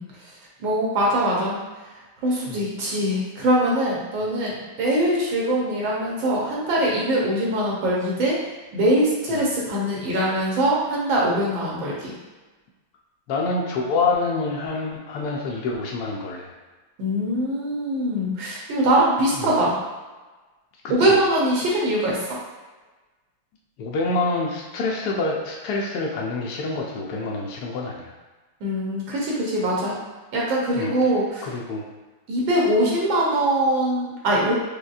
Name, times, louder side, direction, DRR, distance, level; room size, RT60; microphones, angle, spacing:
voice 1, 0.0-1.6 1.9-8.4 8.7-12.1 17.0-19.8 20.9-22.4 28.6-30.0 30.3-31.5 32.3-34.5, right 1 dB, 70° right, -4 dB, 1.5 m, -22 dB
voice 2, 13.3-16.5 19.4-19.5 20.8-21.2 23.8-28.1 30.8-30.9 31.4-31.8, left 3 dB, 90° left, -2 dB, 0.8 m, -27 dB
5.1 x 2.3 x 2.4 m, 1.2 s
omnidirectional pair, 2.3 m